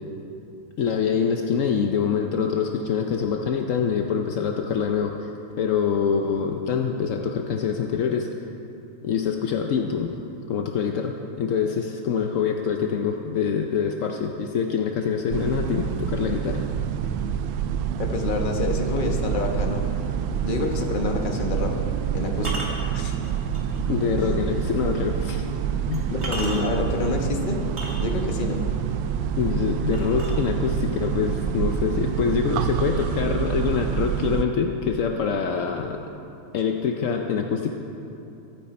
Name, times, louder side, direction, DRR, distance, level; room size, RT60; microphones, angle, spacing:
voice 1, 0.8-5.3 5.6-8.3 9.0-10.2 10.5-16.7 23.9-25.4 25.9-26.1 29.4-36.0 36.5-37.7, left 6 dB, 65° left, 3 dB, 0.8 m, -25 dB
sound 1, 15.3-34.4, right 8 dB, 85° right, 1.4 m, -27 dB
voice 2, 18.0-19.8 20.4-21.7 22.1-23.2 24.2-24.3 26.1-27.6 28.0-28.6, left 3 dB, 30° left, 2 dB, 1.1 m, -27 dB
sound 2, 20.6-20.8 22.4-23.8 24.3-24.4 25.3-25.4 25.9-26.9 27.6-28.4 29.9-30.9 31.8-31.9 32.3-32.7 33.0-34.0, right 2 dB, 35° right, 2.1 m, -36 dB
23.5 x 9.1 x 4.3 m, 2.8 s
omnidirectional pair, 2.1 m